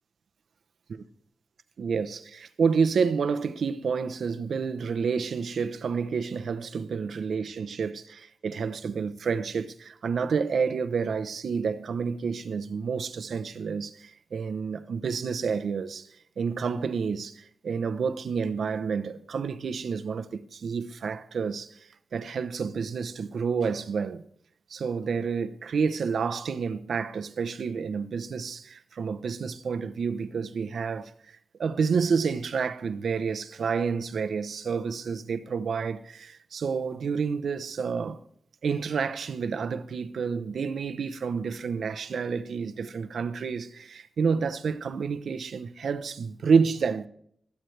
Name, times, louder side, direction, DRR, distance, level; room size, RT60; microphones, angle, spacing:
voice 1, 1.8-16.1 16.4-21.8 22.1-24.2 24.7-31.1 31.6-38.2 38.6-47.1, right 5 dB, 85° right, 0.8 m, -29 dB
22.0 x 9.3 x 3.3 m
wide cardioid pair, 95°, 0 cm